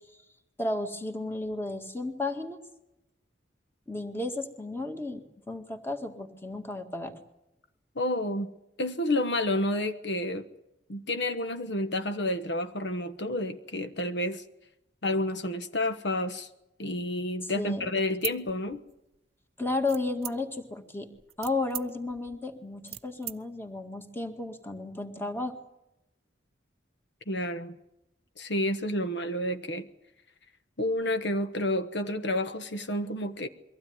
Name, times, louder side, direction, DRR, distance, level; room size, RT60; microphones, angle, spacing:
voice 1, 0.6-2.6 3.9-7.1 17.4-17.9 19.6-21.1 21.4-25.5, left 2 dB, 10° left, 2.0 m, -33 dB
voice 2, 7.9-8.5 8.8-10.5 10.9-14.4 15.0-16.5 16.8-18.8 27.3-27.7 28.4-29.9 30.8-33.5, left 1 dB, 65° left, 1.3 m, -30 dB
sound 1, 18.1-19.2 19.9-20.7 21.1-23.4, right 13 dB, 30° right, 0.7 m, -39 dB
23.5 x 16.0 x 9.6 m
head